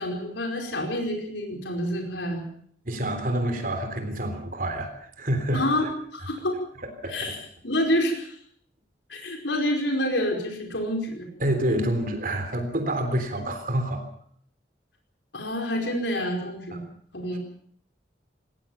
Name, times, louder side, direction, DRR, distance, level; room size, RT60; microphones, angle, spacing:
voice 1, 0.0-2.5 5.5-5.9 6.1-6.6 7.1-7.4 7.6-8.3 9.1-11.3 15.3-16.8 17.1-17.4, left 1 dB, 90° left, 2 dB, 5.0 m, -27 dB
voice 2, 2.9-5.7 6.8-7.4 11.4-14.0 16.7-16.8, right 1 dB, 50° right, 6 dB, 3.5 m, -28 dB
20.0 x 19.0 x 7.2 m, 0.62 s
head